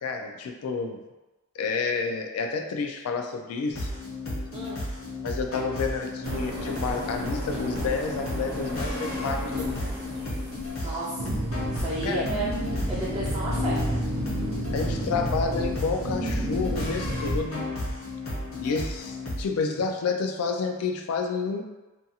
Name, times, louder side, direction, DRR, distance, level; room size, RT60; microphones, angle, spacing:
voice 1, 0.0-1.0 1.6-3.9 5.2-10.0 10.8-10.9 12.0-12.2 14.7-17.6 18.6-21.6, left 4 dB, 85° left, 4 dB, 0.3 m, -30 dB
sound 1, 3.7-19.4, left 2 dB, 65° left, 0.9 m, -33 dB
sound 2, 6.2-11.0, equal, 45° right, 0.7 m, -36 dB
voice 2, 10.8-11.4 11.7-12.5 12.9-13.9, right 2 dB, 20° right, -7 dB, 0.3 m, -32 dB
sound 3, 11.2-17.4, right 1 dB, 85° right, 0.5 m, -30 dB
2.5 x 2.3 x 2.7 m, 1.1 s
head